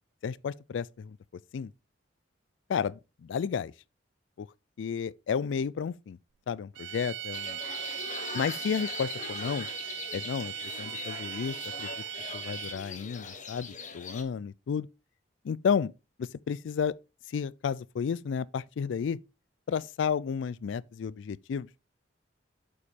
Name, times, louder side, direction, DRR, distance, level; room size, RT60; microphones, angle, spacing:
voice 1, 0.2-1.2 1.5-1.7 2.7-3.7 4.4-4.5 4.8-6.2 6.5-7.6 8.3-9.7 10.1-11.9 12.3-14.9 15.4-15.9 16.2-16.9 17.3-19.2 19.7-21.7, left 6 dB, 75° left, 0.3 m, -32 dB
sound 1, 6.7-13.0, right 11 dB, 80° right, 0.5 m, -39 dB
sound 2, 7.3-14.2, left 4 dB, 40° left, 1.2 m, -41 dB
8.0 x 5.4 x 3.6 m
head